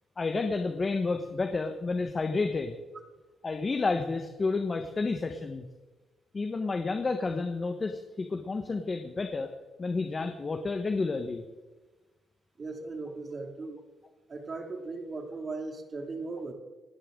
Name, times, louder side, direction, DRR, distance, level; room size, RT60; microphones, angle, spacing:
voice 1, 0.2-2.8 3.4-5.7 6.3-9.5 9.8-11.4, left 3 dB, 30° left, 6 dB, 1.3 m, -30 dB
voice 2, 12.6-13.8 14.3-16.5, right 3 dB, 40° right, 4 dB, 2.6 m, -38 dB
28.0 x 11.0 x 3.9 m, 1.2 s
cardioid pair, 90°, 0 cm